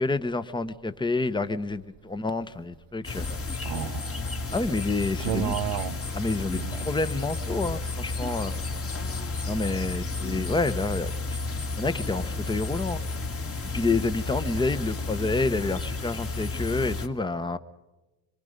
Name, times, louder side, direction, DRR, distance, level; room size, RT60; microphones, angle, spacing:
voice 1, 0.0-3.4 4.5-5.5 6.1-8.7 9.5-11.1 11.8-13.0 13.7-17.6, left 3 dB, 10° left, 1.0 m, -28 dB
sound 1, 3.0-17.1, left 3 dB, 30° left, 1.8 m, -32 dB
voice 2, 3.6-4.4 5.2-6.0 6.5-6.9 14.6-14.7, right 13 dB, 65° right, 1.0 m, -32 dB
24.5 x 23.5 x 5.2 m
cardioid pair, 100°, 46 cm